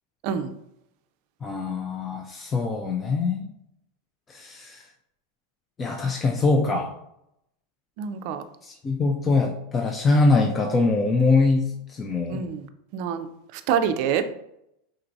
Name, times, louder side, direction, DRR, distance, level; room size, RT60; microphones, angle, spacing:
voice 1, 1.4-3.5 4.3-4.9 5.8-7.0 8.6-12.4, left 3 dB, 15° left, 1 dB, 0.4 m, -23 dB
voice 2, 8.0-8.4 12.3-12.7 12.9-13.3 13.5-14.3, right 8 dB, 50° right, 9 dB, 0.4 m, -26 dB
4.5 x 3.7 x 2.6 m, 0.79 s
supercardioid pair, 160°, 0 cm